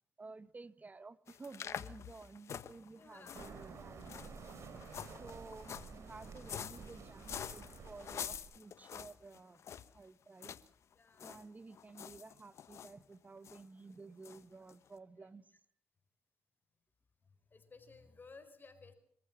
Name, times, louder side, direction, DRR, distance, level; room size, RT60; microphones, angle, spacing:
voice 1, 0.2-4.1 5.2-9.6 9.9-10.5 11.2-15.6, right 3 dB, 30° right, 1.4 m, -53 dB
sound 1, 1.3-10.0 10.4-10.7 10.9-11.4 11.7-12.9 13.4-13.6 14.2-14.4 14.7-14.8, left 8 dB, 65° left, 1.2 m, -47 dB
voice 2, 2.9-3.6 4.9-5.3 10.9-11.4 17.4-18.9, left 4 dB, 40° left, 4.7 m, -58 dB
sound 2, 3.3-8.4, right 5 dB, 65° right, 3.4 m, -51 dB
25.5 x 14.5 x 7.3 m
cardioid pair, 65°, 5 cm